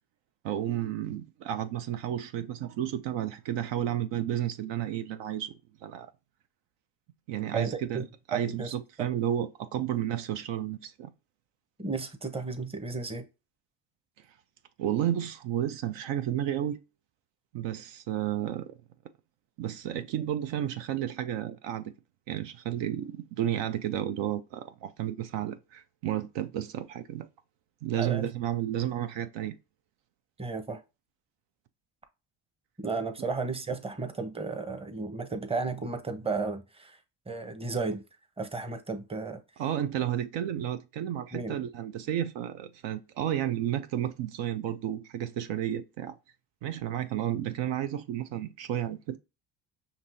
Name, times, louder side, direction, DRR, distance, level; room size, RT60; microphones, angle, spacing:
voice 1, 0.4-5.5 5.8-6.1 7.3-11.1 14.8-16.8 17.5-18.7 19.6-21.9 22.3-27.3 27.8-29.6 39.6-46.1 46.6-49.2, right 11 dB, 70° right, 0.6 m, -32 dB
voice 2, 7.5-8.0 8.3-8.7 9.0-9.1 11.8-13.2 28.0-28.3 30.4-30.8 32.8-37.0 37.3-38.0 38.4-39.4 41.3-41.6, right 4 dB, 15° right, 0.8 m, -33 dB
5.3 x 2.8 x 2.6 m
supercardioid pair, 60°, 46 cm